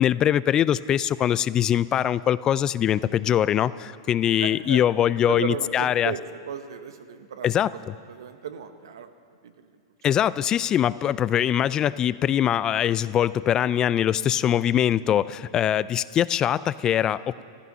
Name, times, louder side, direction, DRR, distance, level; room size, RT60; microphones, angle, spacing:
voice 1, 0.0-6.1 7.4-7.9 10.0-17.4, left 10 dB, 30° left, 18 dB, 0.3 m, -22 dB
voice 2, 4.4-4.8 5.1-7.8 8.1-9.1 9.4-9.6 10.1-10.2, right 8 dB, 80° right, 9 dB, 1.1 m, -35 dB
15.5 x 14.5 x 5.5 m, 2.3 s
hypercardioid pair, 120°, 2 cm